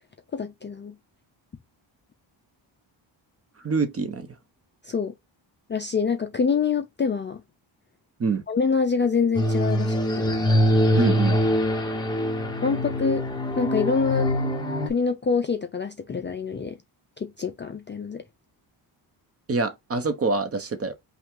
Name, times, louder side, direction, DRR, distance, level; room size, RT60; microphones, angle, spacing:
voice 1, 0.3-0.9 4.8-5.1 5.7-7.4 8.5-10.4 11.3-11.4 12.6-13.3 13.6-14.3 14.9-16.8 17.2-18.2, left 5 dB, 25° left, 0.4 m, -26 dB
voice 2, 3.6-4.3 8.2-8.4 10.9-11.4 19.5-20.9, right 4 dB, 30° right, 1.0 m, -25 dB
sound 1, 9.3-14.9, equal, 10° left, 1.3 m, -23 dB
5.6 x 2.5 x 3.7 m
cardioid pair, 145°, 46 cm